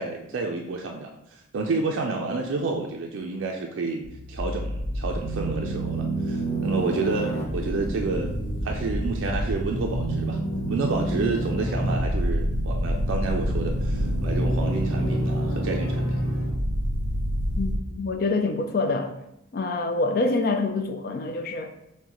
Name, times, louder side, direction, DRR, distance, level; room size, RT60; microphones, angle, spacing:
voice 1, 0.0-4.0 4.3-8.3 8.6-10.4 10.7-16.2, right 3 dB, 75° right, 2 dB, 0.4 m, -30 dB
sound 1, 4.0-17.8, right 1 dB, 85° left, 0.7 m, -27 dB
voice 2, 17.6-19.1 19.5-21.7, left 3 dB, 50° left, 6 dB, 0.4 m, -26 dB
6.0 x 2.1 x 2.9 m, 0.81 s
head